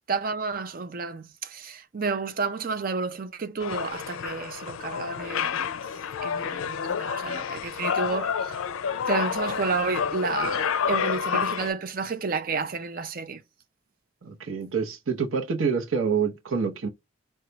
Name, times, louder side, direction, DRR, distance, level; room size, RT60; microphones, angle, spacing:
voice 1, 0.1-8.6 9.1-13.4, right 4 dB, 45° right, 0.5 m, -31 dB
sound 1, 3.6-11.7, left 7 dB, 85° left, 0.4 m, -29 dB
voice 2, 14.2-16.9, right 6 dB, 90° right, 0.8 m, -27 dB
4.4 x 2.3 x 3.9 m
head